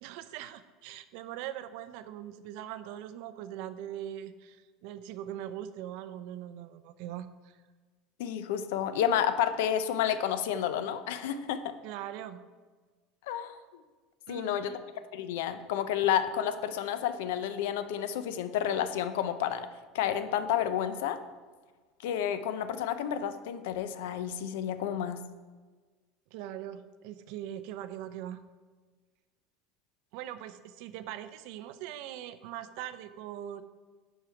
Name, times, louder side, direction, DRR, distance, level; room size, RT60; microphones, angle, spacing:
voice 1, 0.0-7.6 11.8-12.4 14.3-14.8 26.3-28.4 30.1-33.6, right 11 dB, 60° right, 12 dB, 0.5 m, -41 dB
voice 2, 8.2-11.7 13.3-13.6 14.3-14.7 15.1-19.7 19.9-21.2 22.0-25.2, left 9 dB, 85° left, 11 dB, 0.6 m, -30 dB
11.0 x 5.0 x 4.5 m, 1.4 s
cardioid pair, 170°, 0 cm